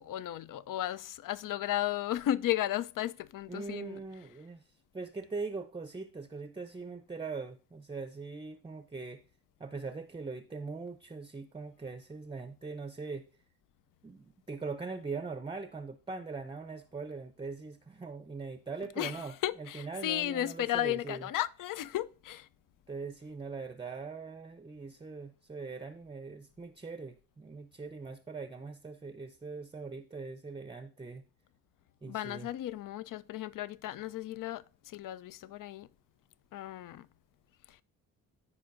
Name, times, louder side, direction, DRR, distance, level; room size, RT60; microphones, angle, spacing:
voice 1, 0.0-4.0 19.0-22.5 32.1-35.9 36.5-37.1 37.7-37.8, left 13 dB, 50° left, 0.5 m, -34 dB
voice 2, 3.5-4.6 4.9-9.2 9.6-13.2 14.0-21.3 22.9-31.2 32.0-32.5, right 4 dB, 15° right, 0.6 m, -41 dB
14.5 x 4.9 x 2.6 m
hypercardioid pair, 45°, 41 cm